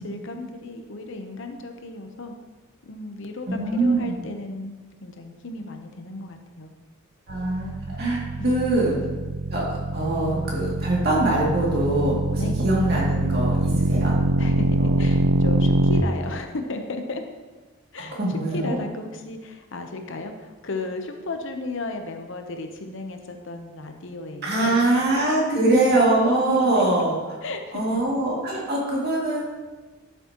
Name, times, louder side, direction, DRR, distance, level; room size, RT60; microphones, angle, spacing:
voice 1, 0.0-2.3 2.8-6.7 8.4-8.9 12.4-12.6 14.4-17.2 17.9-24.9 25.4-26.9 27.4-28.0, left 2 dB, 60° left, 5 dB, 0.8 m, -34 dB
voice 2, 3.5-4.2 7.3-8.9 9.5-9.7 9.9-14.2 14.8-15.0 18.0-18.8 24.4-27.1 27.7-29.4, right 2 dB, 50° right, -4 dB, 2.4 m, -23 dB
sound 1, 7.3-16.0, right 2 dB, 80° right, 0.4 m, -24 dB
11.5 x 6.9 x 2.9 m, 1.3 s
head